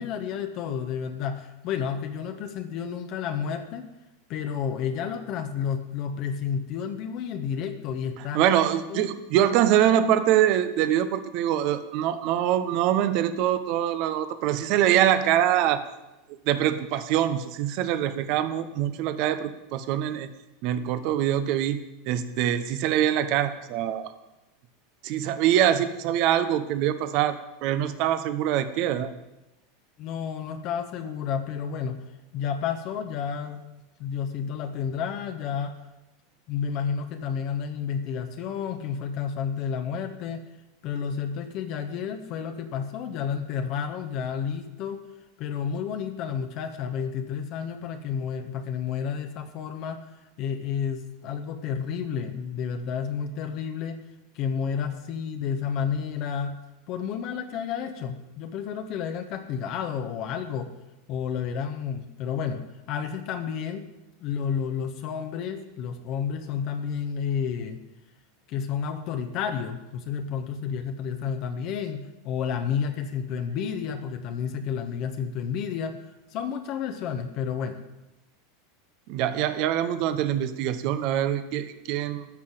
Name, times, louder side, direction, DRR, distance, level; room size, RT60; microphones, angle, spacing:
voice 1, 0.0-3.9 4.3-8.6 8.9-9.1 30.0-32.0 32.3-35.8 36.5-40.4 40.8-45.1 45.4-50.1 50.4-54.0 54.3-56.6 56.9-60.7 61.1-63.9 64.2-67.8 68.5-76.0 76.3-77.8, left 7 dB, 50° left, 6 dB, 1.2 m, -31 dB
voice 2, 8.3-15.8 16.5-20.3 20.6-21.8 22.0-24.1 25.0-29.1 79.1-82.3, right 11 dB, 55° right, 11 dB, 1.0 m, -24 dB
13.5 x 5.7 x 8.0 m, 0.99 s
hypercardioid pair, 90°, 0 cm